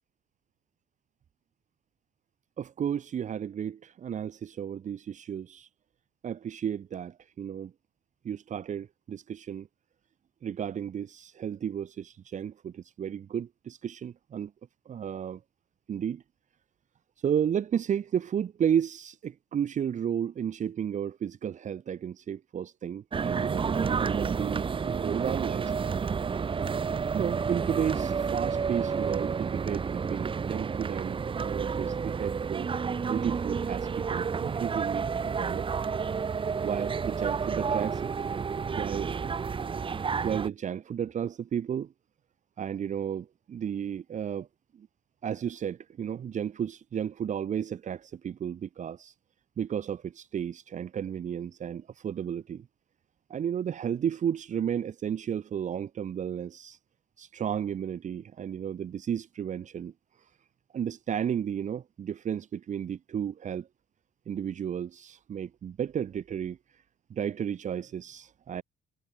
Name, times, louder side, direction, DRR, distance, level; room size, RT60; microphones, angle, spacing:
voice 1, 2.6-5.7 6.2-7.7 8.2-9.7 10.4-14.5 14.8-15.4 15.9-16.2 17.2-26.0 27.1-32.7 33.1-35.8 36.6-38.1 38.7-39.1 40.2-41.9 42.6-44.5 44.7-44.9 45.2-49.1 49.6-52.7 53.3-56.8 57.2-59.9 60.2-60.3 60.7-63.7 64.3-66.8 67.1-68.6, right 8 dB, 45° right, 2.9 m, -33 dB
sound 1, 23.1-40.5, right 6 dB, 30° right, 2.0 m, -30 dB
cardioid pair, 110°, 17 cm